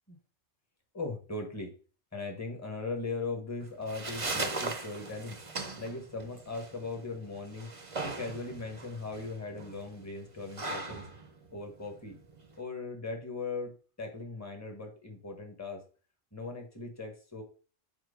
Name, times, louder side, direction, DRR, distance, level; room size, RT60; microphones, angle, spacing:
voice 1, 0.9-1.7 2.1-5.4 5.8-7.7 8.0-11.0 11.5-12.2 12.6-15.8 16.3-17.4, left 3 dB, 15° left, 2 dB, 1.6 m, -39 dB
sound 1, 3.6-12.6, right 3 dB, 30° right, 0.9 m, -39 dB
9.0 x 3.2 x 5.2 m, 0.38 s
omnidirectional pair, 1.2 m